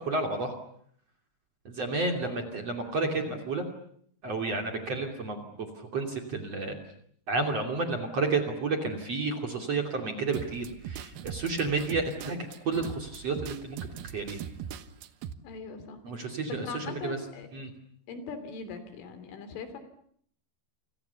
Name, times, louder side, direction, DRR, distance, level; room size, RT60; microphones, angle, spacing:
voice 1, 0.0-0.5 1.6-3.6 4.2-5.5 5.8-6.8 7.3-13.8 14.1-14.4 16.0-17.2 17.5-17.7, right 3 dB, 40° right, 3 dB, 3.2 m, -31 dB
sound 1, 10.3-15.3, right 9 dB, 70° right, 2.4 m, -40 dB
voice 2, 15.4-17.5 18.1-19.8, left 5 dB, 75° left, 10 dB, 5.4 m, -40 dB
30.0 x 26.0 x 7.1 m, 0.64 s
omnidirectional pair, 5.7 m